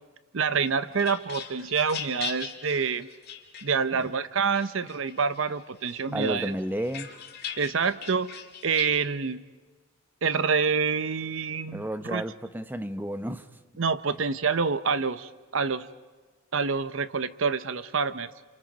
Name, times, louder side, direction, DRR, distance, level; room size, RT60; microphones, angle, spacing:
voice 1, 0.3-3.1 3.6-6.5 7.6-9.4 10.2-12.2 13.8-15.9 16.5-18.3, right 5 dB, 65° right, 0.7 m, -27 dB
sound 1, 0.5-4.1 4.6-5.5 5.9-9.0, left 8 dB, 50° left, 2.5 m, -40 dB
voice 2, 6.1-7.1 11.7-13.5, right 1 dB, 10° right, 0.8 m, -32 dB
30.0 x 27.5 x 5.2 m
head